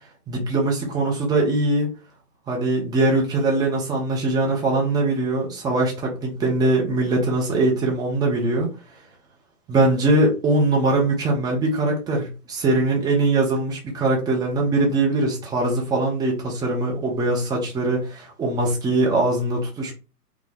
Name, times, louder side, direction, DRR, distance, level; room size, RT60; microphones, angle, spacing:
voice 1, 0.3-1.9 2.5-8.7 9.7-19.9, right 2 dB, 10° right, 0.7 m, -22 dB
4.3 x 2.3 x 3.5 m
figure-of-eight pair, 120°, 48 cm